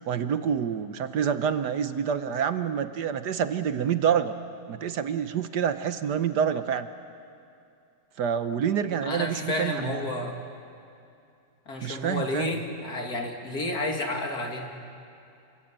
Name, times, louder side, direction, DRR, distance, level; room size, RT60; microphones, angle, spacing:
voice 1, 0.1-4.3 4.7-6.9 8.2-10.1 11.8-12.5, right 8 dB, 65° right, 10 dB, 1.4 m, -27 dB
voice 2, 9.0-10.4 11.7-14.7, left 2 dB, 55° left, 2 dB, 3.0 m, -31 dB
28.0 x 21.5 x 8.8 m, 2.5 s
omnidirectional pair, 2.0 m